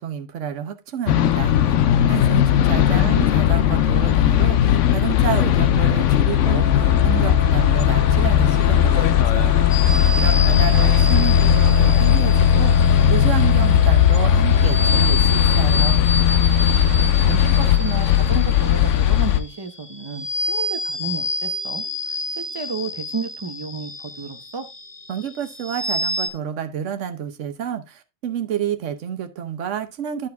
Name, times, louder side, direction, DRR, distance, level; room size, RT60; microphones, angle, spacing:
voice 1, 0.0-1.7 2.1-9.7 10.2-16.0 25.1-30.3, right 8 dB, 80° right, 1.2 m, -29 dB
sound 1, 1.1-19.4, left 10 dB, 80° left, 1.0 m, -17 dB
voice 2, 2.4-3.2 16.7-24.7, right 4 dB, 25° right, 0.8 m, -32 dB
sound 2, 6.5-15.0, right 2 dB, 50° right, 0.3 m, -34 dB
sound 3, 9.7-26.3, left 2 dB, 20° left, 1.2 m, -29 dB
11.0 x 4.7 x 3.4 m
omnidirectional pair, 1.3 m